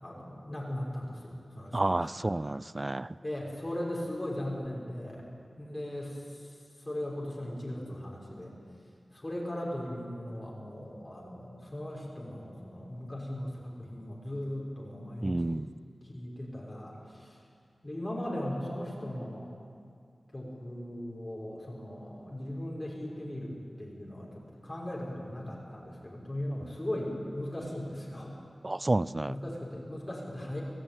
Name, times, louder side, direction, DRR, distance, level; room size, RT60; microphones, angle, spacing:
voice 1, 0.0-2.1 3.2-5.3 5.6-8.5 9.1-15.7 16.1-17.4 17.8-19.5 20.3-28.3 29.2-30.6, left 1 dB, 30° left, -3 dB, 5.9 m, -38 dB
voice 2, 1.7-3.1 15.2-15.7 28.6-29.4, right 2 dB, 30° right, 17 dB, 0.5 m, -30 dB
25.0 x 15.5 x 9.3 m, 2.3 s
wide cardioid pair, 65°, 0 cm